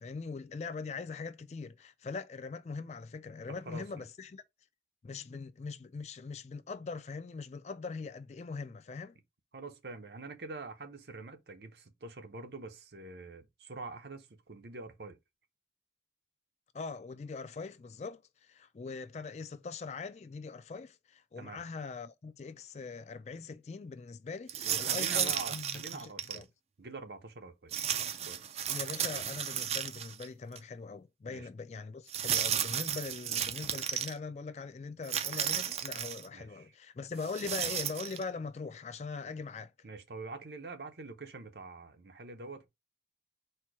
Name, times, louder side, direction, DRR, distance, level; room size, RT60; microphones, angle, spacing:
voice 1, 0.0-4.4 5.0-9.2 16.7-26.5 28.7-39.7, left 4 dB, 40° left, 0.3 m, -42 dB
voice 2, 3.5-4.1 9.5-15.2 21.4-21.6 24.6-26.5 26.8-27.7 28.2-28.5 31.3-31.5 36.3-36.7 39.8-42.7, right 3 dB, 70° right, 0.8 m, -45 dB
sound 1, 24.5-26.4 27.7-30.3 30.6-30.7 32.1-34.1 35.0-36.3 37.2-38.2, right 9 dB, 35° right, 0.4 m, -34 dB
4.3 x 2.2 x 4.6 m
head